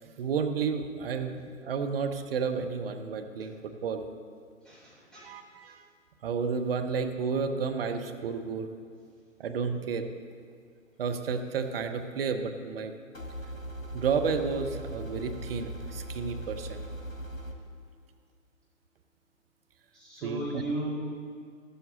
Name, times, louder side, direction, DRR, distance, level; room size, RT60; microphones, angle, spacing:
voice 1, 0.0-4.1 5.2-5.8 6.2-8.7 9.4-10.0 11.0-12.9 13.9-16.8 20.2-20.6, right 5 dB, 45° right, 6 dB, 1.0 m, -31 dB
voice 2, 4.6-5.3 19.9-20.9, right 2 dB, ahead, -9 dB, 3.7 m, -36 dB
sound 1, 13.1-17.5, right 1 dB, 75° left, 1.7 m, -39 dB
13.5 x 12.5 x 3.8 m, 2.1 s
figure-of-eight pair, 130°, 41 cm